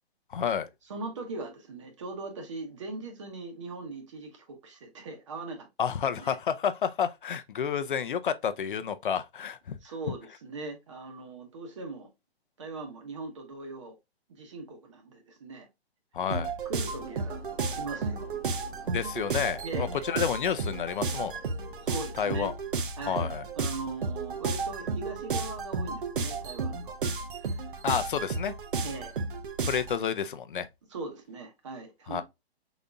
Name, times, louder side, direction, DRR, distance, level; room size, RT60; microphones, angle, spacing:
voice 1, 0.3-0.7 5.8-9.8 16.1-16.5 18.9-21.3 22.2-22.5 23.0-23.4 27.8-28.5 29.7-30.7 32.1-32.2, left 7 dB, 55° left, 0.6 m, -30 dB
voice 2, 0.9-5.7 6.1-6.4 9.8-12.1 12.6-14.0 14.3-15.7 16.6-17.4 17.7-18.3 19.6-20.0 21.8-22.5 23.0-23.3 23.6-27.0 27.5-27.7 28.8-29.2 30.9-32.2, right 3 dB, 30° right, 1.0 m, -40 dB
sound 1, 16.3-30.0, right 4 dB, 55° right, 0.7 m, -33 dB
sound 2, 16.8-21.9, left 3 dB, 20° left, 1.2 m, -53 dB
5.3 x 4.0 x 2.3 m
hypercardioid pair, 180°, 32 cm